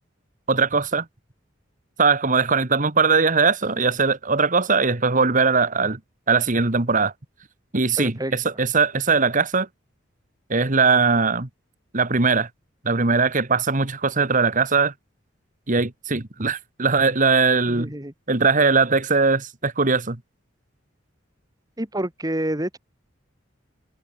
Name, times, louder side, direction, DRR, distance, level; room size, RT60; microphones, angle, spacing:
voice 1, 0.5-1.1 2.0-6.0 6.3-7.1 7.7-9.7 10.5-11.5 11.9-12.5 12.8-14.9 15.7-17.9 18.3-20.2, right 4 dB, 40° right, 1.8 m, -20 dB
voice 2, 8.0-8.3 17.7-18.1 21.8-22.8, right 1 dB, 20° right, 2.9 m, -28 dB
head